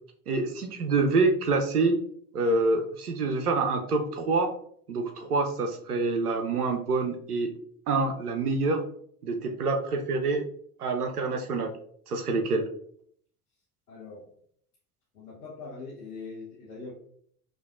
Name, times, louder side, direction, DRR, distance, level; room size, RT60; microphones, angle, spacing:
voice 1, 0.3-2.0 2.3-4.5 4.9-7.5 7.9-8.8 9.2-10.4 10.8-11.7 12.1-12.7, right 3 dB, 90° right, 6 dB, 0.6 m, -26 dB
voice 2, 13.9-14.3 15.1-16.9, left 4 dB, 90° left, -6 dB, 0.8 m, -42 dB
5.7 x 2.4 x 2.3 m, 0.63 s
figure-of-eight pair, 65°, 44 cm